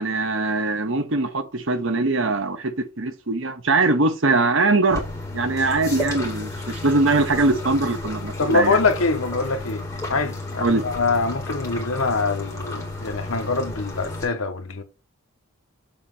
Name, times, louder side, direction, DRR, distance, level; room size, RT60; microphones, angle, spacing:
voice 1, 0.0-5.0 5.3-8.8 10.6-10.8, right 3 dB, 60° right, 1.0 m, -22 dB
sound 1, 4.9-14.3, left 2 dB, 15° left, 1.9 m, -32 dB
voice 2, 8.4-9.8 10.1-14.8, left 3 dB, 75° left, 1.1 m, -24 dB
7.2 x 3.0 x 5.4 m
head